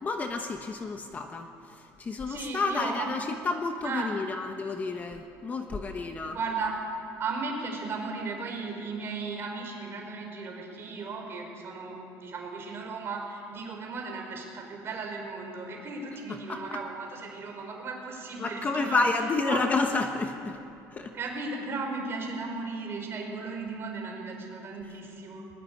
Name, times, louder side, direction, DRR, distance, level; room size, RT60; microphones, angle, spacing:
voice 1, 0.0-6.4 16.3-16.8 18.4-20.6 20.9-21.1, left 3 dB, 20° left, 5 dB, 1.1 m, -30 dB
voice 2, 2.3-3.1 3.8-4.1 6.3-6.7 7.2-19.0 19.5-19.6 21.1-25.5, right 4 dB, 35° right, 1 dB, 4.9 m, -36 dB
21.0 x 20.0 x 8.5 m, 2.6 s
cardioid pair, 165°, 7 cm